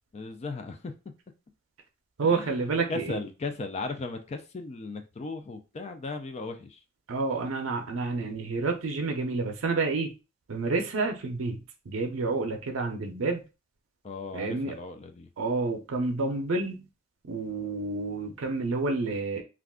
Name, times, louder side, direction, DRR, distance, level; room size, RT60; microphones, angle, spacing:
voice 1, 0.1-0.9 2.2-2.6 2.9-6.8 14.0-15.3, left 3 dB, 35° left, 0.4 m, -36 dB
voice 2, 2.2-3.2 7.1-10.1 10.5-11.6 11.9-13.4 14.3-14.7 15.4-16.9 17.2-19.4, right 3 dB, 80° right, 0.5 m, -29 dB
2.4 x 2.3 x 3.5 m
head